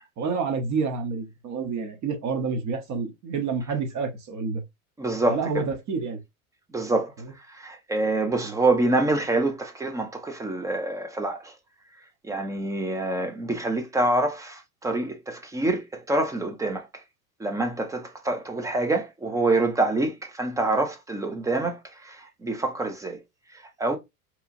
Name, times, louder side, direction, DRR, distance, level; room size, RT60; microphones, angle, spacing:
voice 1, 0.2-4.6 5.3-6.2 7.2-7.3 8.4-8.6, right 5 dB, 40° right, 0.9 m, -28 dB
voice 2, 5.0-5.6 6.7-7.1 7.5-11.5 12.2-16.9 17.4-23.2 23.8-24.0, right 2 dB, 10° right, 0.3 m, -26 dB
3.0 x 2.3 x 2.5 m
hypercardioid pair, 90°, 44 cm